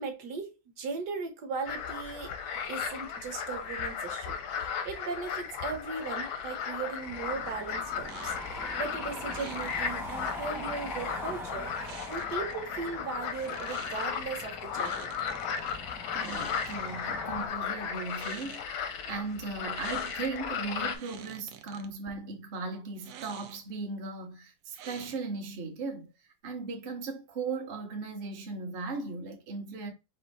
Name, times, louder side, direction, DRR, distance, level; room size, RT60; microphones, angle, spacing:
voice 1, 0.0-2.3 2.7-15.2, right 4 dB, 65° right, 1.4 m, -38 dB
sound 1, 1.7-21.0, left 7 dB, 80° left, 1.6 m, -35 dB
sound 2, 7.0-17.5, equal, ahead, 0.5 m, -43 dB
sound 3, 8.1-8.6 9.3-9.8 11.8-12.5 13.2-14.1 14.7-15.8 16.1-17.1 18.0-18.7 19.7-20.4 20.7-21.9 23.0-23.8 24.7-25.4, right 8 dB, 85° right, 0.7 m, -48 dB
voice 2, 16.1-26.1 26.4-29.9, right 4 dB, 45° right, 0.7 m, -37 dB
4.3 x 2.7 x 4.0 m
omnidirectional pair, 2.1 m